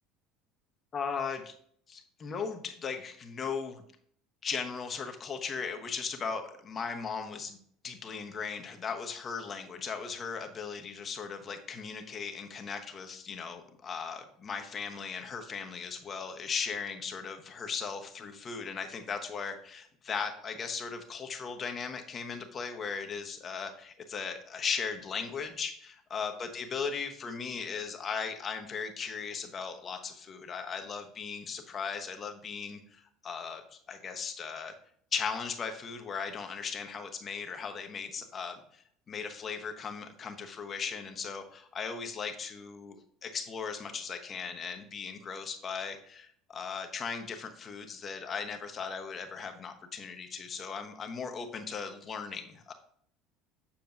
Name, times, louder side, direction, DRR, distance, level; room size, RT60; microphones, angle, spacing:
voice 1, 0.9-1.5 1.9-3.8 4.4-7.6 7.8-34.7 35.1-43.0 43.2-52.7, left 6 dB, 40° left, 6 dB, 1.0 m, -37 dB
7.2 x 6.6 x 2.6 m, 0.63 s
hypercardioid pair, 70°, 0 cm